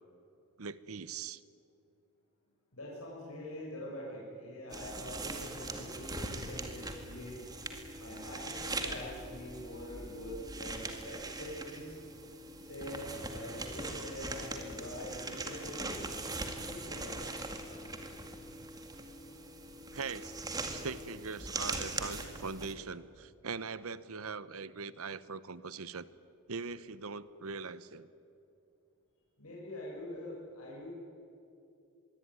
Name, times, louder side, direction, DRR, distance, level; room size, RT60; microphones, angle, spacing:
voice 1, 0.6-1.4 19.9-20.3 20.7-26.1 26.5-28.1, right 5 dB, 75° right, 16 dB, 0.9 m, -41 dB
voice 2, 2.7-7.4 8.0-12.0 12.6-16.0 16.7-17.2 29.4-30.9, left 1 dB, 75° left, -4 dB, 6.3 m, -44 dB
sound 1, 4.7-22.7, right 2 dB, 15° right, 2.1 m, -41 dB
25.0 x 22.5 x 9.7 m, 2.7 s
head